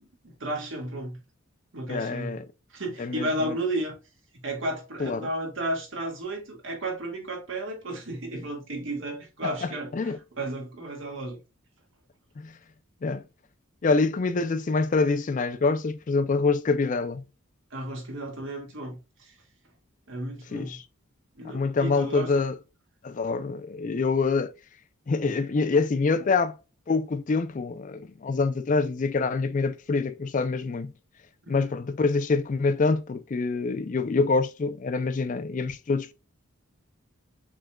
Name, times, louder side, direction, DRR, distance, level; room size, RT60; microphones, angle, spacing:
voice 1, 0.2-1.2 1.7-2.4 2.7-4.0 4.3-11.4 17.7-19.3 20.1-20.8 21.4-22.3 25.2-25.4 31.5-31.7, right 1 dB, 65° right, 1.8 m, -33 dB
voice 2, 1.9-2.4 3.0-3.5 5.0-5.3 9.6-10.2 12.4-12.5 13.0-13.2 13.8-17.2 20.5-20.8 21.4-22.6 23.0-24.5 25.1-26.6 26.9-30.9 31.5-36.1, left 4 dB, 35° left, 0.4 m, -26 dB
6.3 x 3.4 x 2.2 m
head